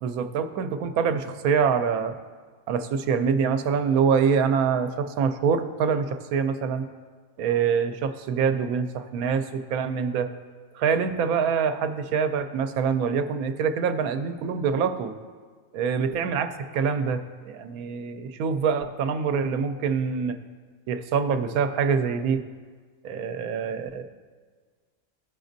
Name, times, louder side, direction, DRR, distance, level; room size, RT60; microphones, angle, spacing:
voice 1, 0.0-2.1 2.7-6.9 7.4-10.3 10.7-15.1 15.7-16.5 16.7-20.4 20.9-22.4 23.0-24.0, right 6 dB, 80° right, 9 dB, 1.0 m, -25 dB
14.0 x 5.0 x 2.6 m, 1.5 s
omnidirectional pair, 1.5 m